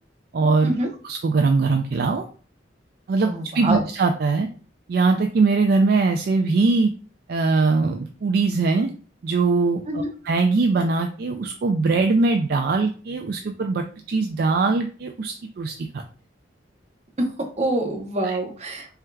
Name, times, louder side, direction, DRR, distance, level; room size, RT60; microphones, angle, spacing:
voice 1, 0.3-0.7 1.0-2.3 3.1-4.5 4.9-6.9 7.3-8.9 9.2-16.0 18.2-18.4, right 3 dB, 55° right, 5 dB, 0.3 m, -21 dB
voice 2, 3.2-3.8 9.9-10.1 17.2-17.3 17.6-18.9, right 1 dB, 35° right, 3 dB, 0.8 m, -25 dB
4.4 x 3.6 x 2.3 m, 0.40 s
head